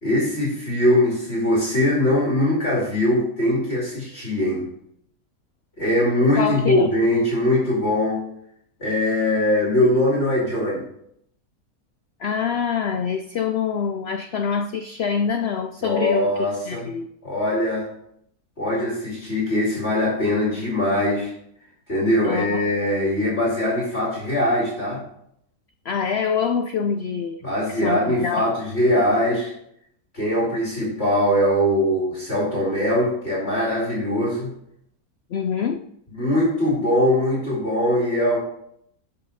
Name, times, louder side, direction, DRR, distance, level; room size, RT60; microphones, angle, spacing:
voice 1, 0.0-4.7 5.8-8.2 8.8-10.8 15.8-16.9 17.2-17.9 18.6-21.3 21.9-25.0 27.4-29.5 30.1-34.5 36.1-38.4, left 1 dB, 45° left, -6 dB, 2.9 m, -21 dB
voice 2, 6.4-6.9 12.2-16.3 16.7-17.1 22.2-22.7 25.9-27.4 27.7-28.5 35.3-35.9, left 6 dB, 75° left, 8 dB, 0.5 m, -25 dB
12.0 x 5.6 x 4.1 m, 0.72 s
omnidirectional pair, 1.6 m